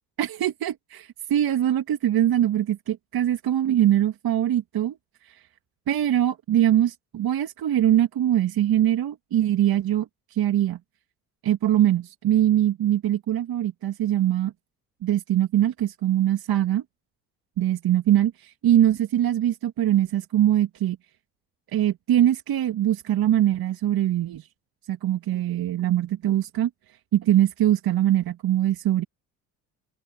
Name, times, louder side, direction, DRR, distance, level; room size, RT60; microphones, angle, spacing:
voice 1, 0.2-5.0 5.3-5.4 5.9-10.1 10.3-10.8 11.4-14.5 15.0-16.8 17.6-21.0 21.7-24.5 24.9-26.7 27.1-29.0, right 12 dB, 60° right, 2.3 m, -22 dB
supercardioid pair, 65°, 40 cm